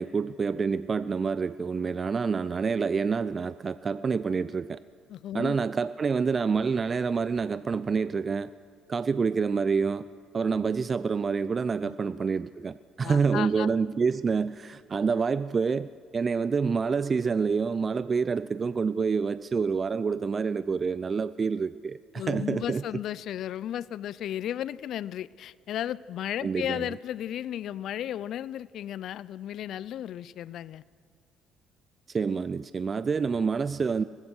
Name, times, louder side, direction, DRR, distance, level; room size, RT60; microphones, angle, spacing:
voice 1, 0.0-4.8 5.3-8.5 8.9-10.1 10.3-22.8 26.4-26.8 32.1-34.0, right 5 dB, 40° right, 0.6 m, -27 dB
voice 2, 5.1-5.6 11.8-12.0 13.0-13.7 22.1-30.8, left 11 dB, 65° left, 0.5 m, -34 dB
24.0 x 20.0 x 6.3 m
hypercardioid pair, 60°, 0 cm